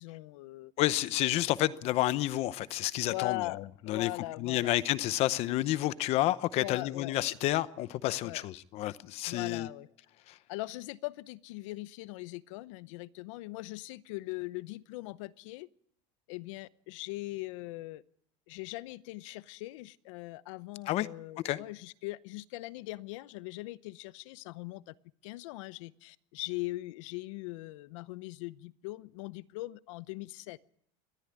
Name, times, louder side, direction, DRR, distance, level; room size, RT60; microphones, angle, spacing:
voice 1, 0.0-0.7 3.1-3.6 3.9-4.8 6.6-7.1 8.2-8.5 9.3-9.9 10.5-15.7 16.3-18.0 18.5-24.9 25.2-30.6, left 20 dB, 80° left, 0.8 m, -40 dB
voice 2, 0.8-3.6 3.9-4.1 4.4-9.7 10.3-10.4 20.9-21.1 21.4-21.6, left 15 dB, 40° left, 0.8 m, -30 dB
21.0 x 13.5 x 9.6 m
cardioid pair, 170°, 16 cm